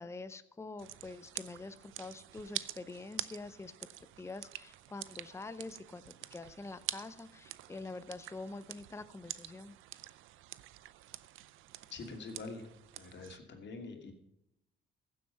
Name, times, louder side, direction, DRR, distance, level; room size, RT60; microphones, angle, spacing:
voice 1, 0.0-3.7 4.2-9.8, left 3 dB, 15° left, 13 dB, 0.6 m, -46 dB
sound 1, 0.8-13.4, right 15 dB, 85° right, 0.6 m, -47 dB
voice 2, 11.9-12.6 13.0-14.1, left 3 dB, 65° left, 4 dB, 2.7 m, -45 dB
15.5 x 7.7 x 5.6 m, 0.78 s
cardioid pair, 90°, 20 cm